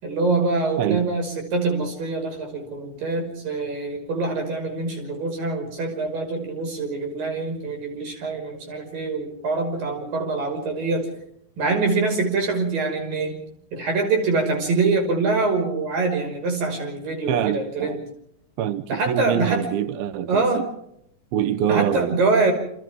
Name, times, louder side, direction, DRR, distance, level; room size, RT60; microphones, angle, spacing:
voice 1, 0.0-11.1 11.6-13.4 13.7-18.0 18.9-19.6 20.3-20.6 21.7-22.5, right 3 dB, 50° right, 7.4 m, -24 dB
voice 2, 17.3-18.0 18.6-20.7 21.3-22.2, right 10 dB, 75° right, 2.4 m, -25 dB
30.0 x 28.0 x 3.7 m
omnidirectional pair, 5.2 m